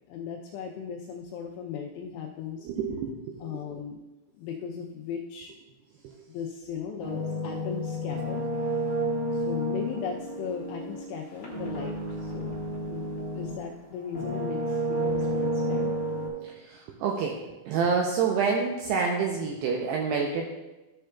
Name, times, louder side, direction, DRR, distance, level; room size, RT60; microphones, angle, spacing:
voice 1, 0.1-2.7 3.4-4.0 4.4-5.6 6.3-8.5 9.3-12.6 12.9-13.1 13.3-16.0, left 7 dB, 85° left, 1 dB, 2.4 m, -37 dB
voice 2, 2.6-3.6 6.0-6.2 16.4-20.5, right 5 dB, 85° right, 1 dB, 2.4 m, -28 dB
sound 1, 7.0-13.7 14.1-16.3, equal, 35° left, 1.7 m, -31 dB
13.0 x 6.4 x 2.3 m, 1.1 s
omnidirectional pair, 5.4 m